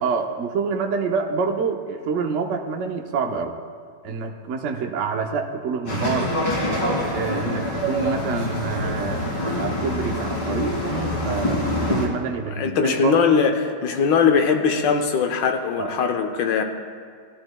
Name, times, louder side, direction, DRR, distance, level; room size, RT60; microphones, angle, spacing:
voice 1, 0.0-3.5 4.0-6.3 7.1-11.6 11.9-13.4 15.8-15.9, right 5 dB, 55° right, 4 dB, 0.9 m, -27 dB
sound 1, 5.9-12.1, left 1 dB, 85° left, 3.2 m, -25 dB
voice 2, 12.6-16.6, left 6 dB, 70° left, 5 dB, 1.5 m, -20 dB
17.5 x 11.5 x 2.3 m, 2.2 s
omnidirectional pair, 2.1 m